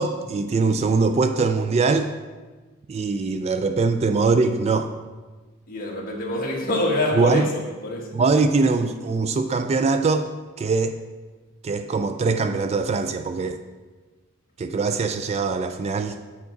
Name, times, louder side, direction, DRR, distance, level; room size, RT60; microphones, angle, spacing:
voice 1, 0.0-2.1 2.9-4.9 7.2-7.5 8.1-10.3 10.6-11.0 11.6-13.6 14.6-16.2, right 4 dB, 30° right, 9 dB, 0.3 m, -22 dB
voice 2, 5.7-8.1, left 1 dB, 40° left, -2 dB, 1.6 m, -25 dB
7.5 x 7.0 x 3.9 m, 1.3 s
head